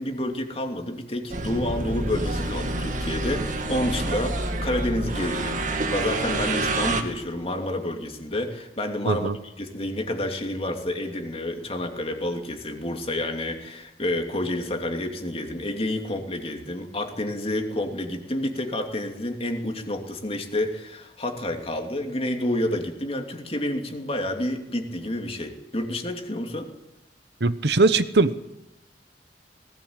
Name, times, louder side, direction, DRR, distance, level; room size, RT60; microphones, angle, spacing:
voice 1, 0.0-26.7, left 1 dB, 35° left, 4 dB, 2.8 m, -29 dB
sound 1, 1.3-7.0, right 2 dB, 45° right, 2.3 m, -28 dB
voice 2, 27.4-28.4, right 3 dB, 65° right, 13 dB, 1.0 m, -20 dB
19.5 x 18.0 x 8.9 m, 0.91 s
head